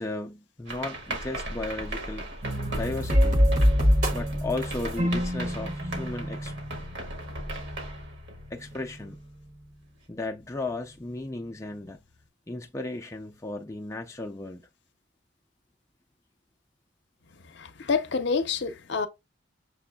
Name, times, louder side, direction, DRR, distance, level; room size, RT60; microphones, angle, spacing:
voice 1, 0.0-2.3 2.7-3.4 4.1-6.5 8.5-9.2 10.1-12.0 12.5-14.7, left 2 dB, 15° left, 0.4 m, -35 dB
sound 1, 0.7-9.1, right 1 dB, 65° right, 1.6 m, -37 dB
sound 2, 2.4-9.2, equal, 45° right, 0.9 m, -26 dB
voice 2, 17.8-19.1, left 5 dB, 60° left, 0.6 m, -27 dB
6.8 x 3.0 x 2.2 m
head